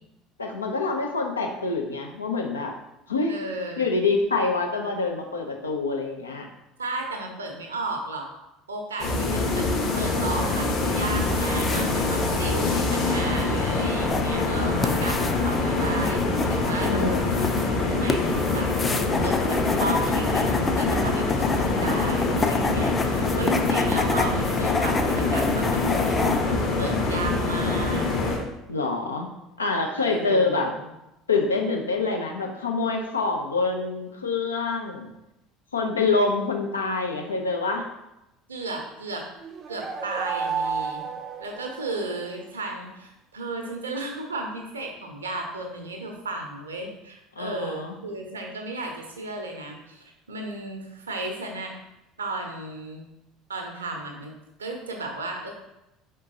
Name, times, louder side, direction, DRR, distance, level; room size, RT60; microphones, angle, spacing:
voice 1, 0.4-2.7 3.1-3.4 3.8-6.5 16.8-17.7 28.7-29.3 29.6-30.7 31.3-35.1 35.7-37.9 47.4-47.9, left 3 dB, 85° left, 2 dB, 0.6 m, -26 dB
voice 2, 3.3-4.0 6.8-8.3 8.7-9.7 10.0-17.2 17.9-18.7 19.2-28.1 30.0-30.9 38.5-39.3 39.7-41.1 41.4-51.7 52.2-53.1 53.5-54.3 54.6-55.5, right 2 dB, 80° right, 2 dB, 0.7 m, -34 dB
sound 1, 9.0-28.4, left 3 dB, 45° left, 1.1 m, -25 dB
sound 2, 10.8-26.4, left 3 dB, 20° left, 0.4 m, -30 dB
sound 3, 39.4-42.3, right 6 dB, 35° right, 0.5 m, -32 dB
5.0 x 3.7 x 2.8 m, 0.91 s
figure-of-eight pair, 65°, 0 cm